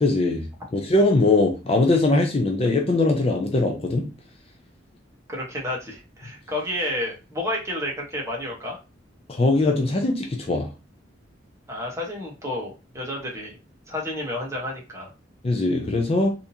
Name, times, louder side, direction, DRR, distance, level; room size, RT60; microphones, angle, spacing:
voice 1, 0.0-0.4 0.7-4.1 9.3-10.7 15.4-16.3, left 2 dB, 30° left, 3 dB, 0.5 m, -21 dB
voice 2, 5.3-8.8 11.7-13.6 13.9-15.1, left 1 dB, 15° right, -2 dB, 1.1 m, -30 dB
3.5 x 2.7 x 2.7 m, 0.29 s
head